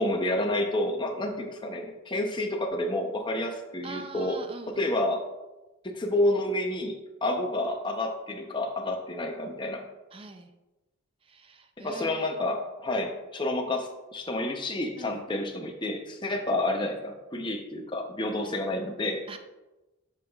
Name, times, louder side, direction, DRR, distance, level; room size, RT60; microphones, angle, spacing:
voice 1, 0.0-4.4 4.8-5.2 5.8-9.8 11.8-19.2, left 1 dB, 20° left, 3 dB, 0.6 m, -29 dB
voice 2, 3.8-4.9 10.1-10.5 11.2-12.3 15.0-15.2 18.4-18.6 19.3-19.4, right 3 dB, 25° right, 7 dB, 0.4 m, -43 dB
8.1 x 5.5 x 2.3 m, 1.1 s
head